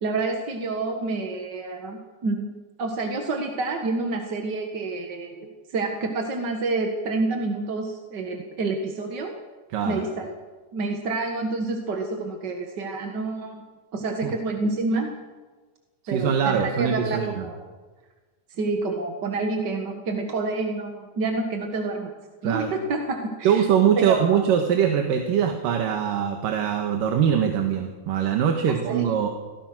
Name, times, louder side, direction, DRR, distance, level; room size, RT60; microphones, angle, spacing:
voice 1, 0.0-2.5 2.8-9.3 9.8-10.3 10.7-13.6 13.9-15.1 16.1-17.6 18.6-22.1 22.4-23.7 24.0-24.4 28.7-29.1, right 3 dB, 45° right, 3 dB, 1.6 m, -28 dB
voice 2, 16.0-17.5 22.4-22.7 23.4-29.3, right 8 dB, 85° right, 3 dB, 3.2 m, -22 dB
25.5 x 17.5 x 6.1 m, 1.3 s
omnidirectional pair, 3.8 m